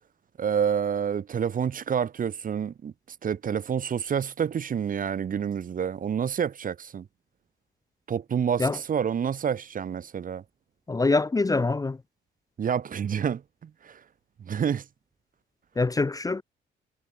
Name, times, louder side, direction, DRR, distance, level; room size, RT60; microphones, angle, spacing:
voice 1, 0.4-2.9 3.2-7.1 8.1-10.4 12.6-14.0 14.4-14.8, right 8 dB, 45° right, 0.9 m, -28 dB
voice 2, 10.9-12.0 15.8-16.4, left 3 dB, 15° left, 0.6 m, -24 dB
cardioid pair, 90°, 20 cm